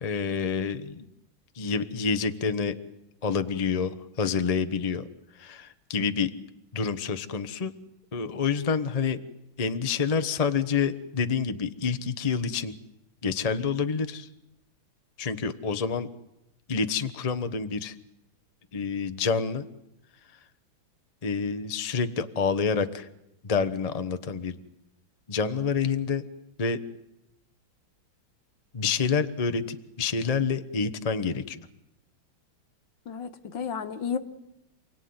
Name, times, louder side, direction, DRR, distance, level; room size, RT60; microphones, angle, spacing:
voice 1, 0.0-1.0 1.6-2.8 3.2-5.1 5.4-6.3 6.7-7.7 8.1-9.2 9.6-12.7 13.2-14.3 15.2-16.1 16.7-17.9 18.7-19.6 21.2-23.1 23.4-24.6 25.3-26.2 26.6-26.8 28.7-31.7, left 5 dB, 30° left, 10 dB, 0.8 m, -28 dB
voice 2, 33.1-34.2, left 6 dB, 65° left, 10 dB, 2.0 m, -32 dB
28.5 x 18.5 x 9.6 m, 0.87 s
omnidirectional pair, 2.2 m